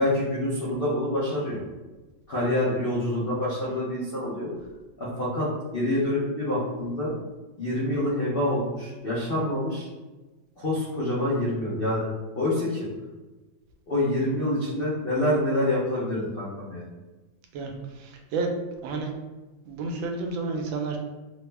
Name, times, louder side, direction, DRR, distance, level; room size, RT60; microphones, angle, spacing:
voice 1, 0.0-1.6 2.3-4.5 5.0-5.5 5.7-7.1 7.6-9.9 10.6-12.1 12.3-12.9 13.9-16.8, left 1 dB, 90° left, -8 dB, 0.5 m, -26 dB
voice 2, 17.5-19.1 19.7-21.0, right 3 dB, 85° right, 2 dB, 1.4 m, -31 dB
3.5 x 2.0 x 3.3 m, 1.2 s
omnidirectional pair, 2.1 m